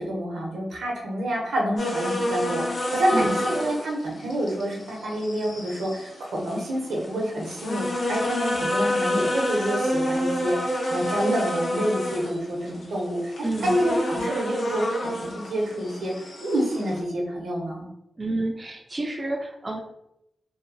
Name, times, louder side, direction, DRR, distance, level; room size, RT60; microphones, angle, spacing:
voice 1, 0.0-13.3 13.6-17.9, equal, 80° right, -1 dB, 0.7 m, -28 dB
sound 1, 1.8-17.0, left 1 dB, 70° left, 0.8 m, -28 dB
voice 2, 3.1-3.4 13.4-13.8 18.2-19.8, right 2 dB, 35° right, 2 dB, 0.4 m, -29 dB
2.7 x 2.4 x 2.6 m, 0.82 s
supercardioid pair, 40°, 0 cm